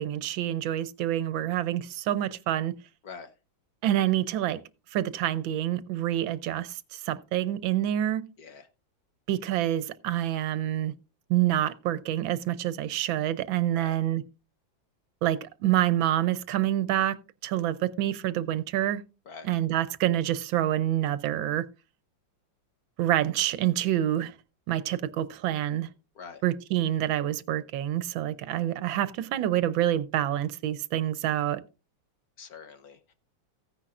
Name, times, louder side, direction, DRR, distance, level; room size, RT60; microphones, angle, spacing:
voice 1, 0.0-2.7 3.8-4.6 4.9-8.2 9.3-10.9 11.3-14.2 15.2-17.2 17.4-19.0 19.4-21.7 23.0-24.3 24.7-25.9 26.4-31.6, right 12 dB, 80° right, 1.5 m, -27 dB
voice 2, 32.4-33.1, left 5 dB, 55° left, 1.3 m, -44 dB
15.0 x 9.9 x 2.4 m
omnidirectional pair, 2.1 m